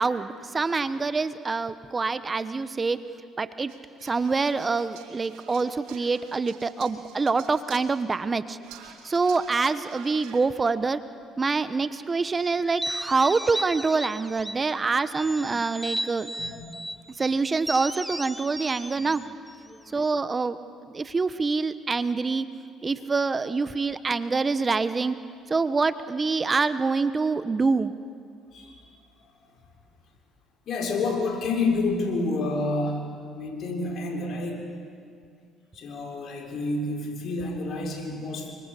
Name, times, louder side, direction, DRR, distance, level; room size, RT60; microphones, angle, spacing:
voice 1, 0.0-3.0 3.4-3.7 4.0-8.6 9.0-11.0 11.4-16.3 17.1-19.2 19.9-20.6 20.9-22.5 22.8-25.2 25.5-27.9, right 4 dB, 30° right, 13 dB, 1.1 m, -25 dB
sound 1, 3.7-7.9 8.6-10.4, right 8 dB, 80° right, 3.0 m, -48 dB
sound 2, 12.6-14.7 15.1-17.0 17.6-20.1, right 1 dB, 5° right, 1.0 m, -35 dB
voice 2, 30.7-33.0 33.3-34.7 35.7-38.6, left 3 dB, 60° left, 2 dB, 6.3 m, -29 dB
28.0 x 25.0 x 8.4 m, 2.2 s
supercardioid pair, 70°, 0 cm